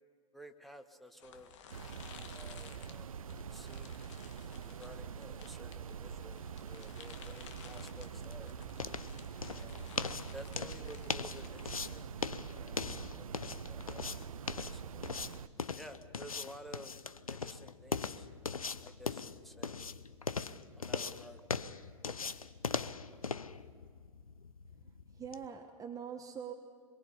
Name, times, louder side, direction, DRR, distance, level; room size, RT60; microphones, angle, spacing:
voice 1, 0.3-1.5 2.3-3.1 3.5-4.0 4.4-8.5 9.5-9.9 10.3-12.1 12.6-14.3 14.7-15.0 15.7-18.3 18.8-19.8 20.8-21.4, equal, ahead, 6 dB, 1.4 m, -53 dB
sound 1, 1.2-11.7, left 7 dB, 60° left, 1.8 m, -55 dB
sound 2, 1.7-15.5, right 7 dB, 75° right, 0.6 m, -45 dB
sound 3, 7.6-25.5, left 5 dB, 85° left, 0.7 m, -41 dB
voice 2, 24.7-26.5, right 7 dB, 20° right, 3 dB, 1.4 m, -44 dB
24.5 x 22.5 x 5.6 m, 2.1 s
figure-of-eight pair, 95°, 18 cm